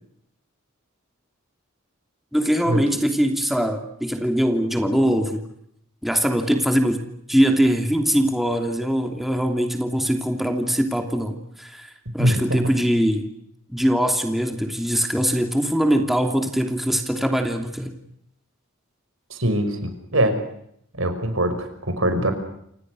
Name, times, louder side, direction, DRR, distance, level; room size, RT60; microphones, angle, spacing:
voice 1, 2.3-5.4 6.0-13.3 13.7-17.9, equal, ahead, 4 dB, 2.9 m, -22 dB
voice 2, 12.2-12.7 19.3-20.4 21.0-22.3, right 1 dB, 75° right, 8 dB, 5.7 m, -22 dB
29.0 x 27.5 x 6.4 m, 0.73 s
head